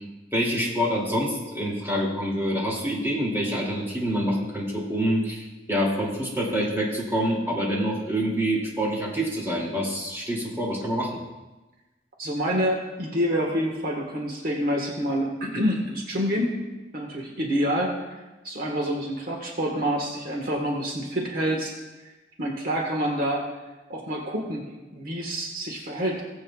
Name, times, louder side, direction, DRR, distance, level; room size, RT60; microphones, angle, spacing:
voice 1, 0.3-11.2, equal, 15° right, -4 dB, 2.5 m, -26 dB
voice 2, 12.2-16.5 16.9-18.2 18.4-21.7 22.4-23.4 23.9-24.6 24.9-26.2, equal, 55° right, 0 dB, 1.5 m, -27 dB
19.0 x 8.0 x 2.4 m, 1.1 s
head